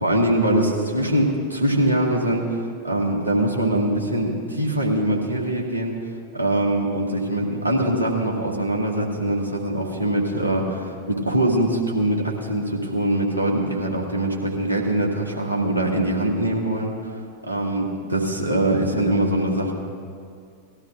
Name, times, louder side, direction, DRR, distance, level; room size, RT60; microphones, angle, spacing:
voice 1, 0.0-2.6 2.8-6.0 6.3-16.9 17.4-19.7, right 1 dB, 85° right, -1 dB, 1.7 m, -23 dB
19.0 x 13.0 x 2.5 m, 2.3 s
figure-of-eight pair, 90°, 0 cm